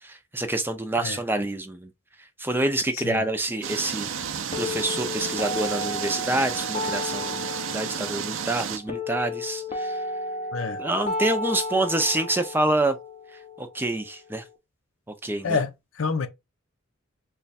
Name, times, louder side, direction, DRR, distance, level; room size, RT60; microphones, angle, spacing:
voice 1, 0.0-1.9 2.4-4.1 4.6-10.0 10.8-13.0 13.6-14.4 15.2-15.6, right 2 dB, 10° right, 0.5 m, -27 dB
voice 2, 2.9-3.2 10.5-10.8 15.4-16.3, left 4 dB, 85° left, 0.6 m, -28 dB
sound 1, 3.6-8.8, right 7 dB, 70° right, 0.5 m, -32 dB
sound 2, 4.5-14.5, left 2 dB, 30° left, 0.6 m, -33 dB
3.2 x 2.3 x 4.0 m
head